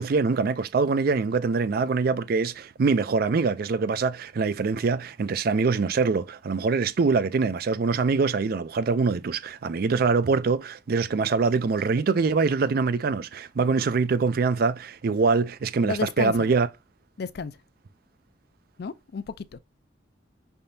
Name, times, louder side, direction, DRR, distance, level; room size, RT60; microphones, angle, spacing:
voice 1, 0.0-16.7, right 4 dB, 55° right, 0.4 m, -24 dB
voice 2, 15.8-16.5 17.2-17.5 18.8-19.6, left 5 dB, 60° left, 0.4 m, -32 dB
5.7 x 3.5 x 2.6 m
head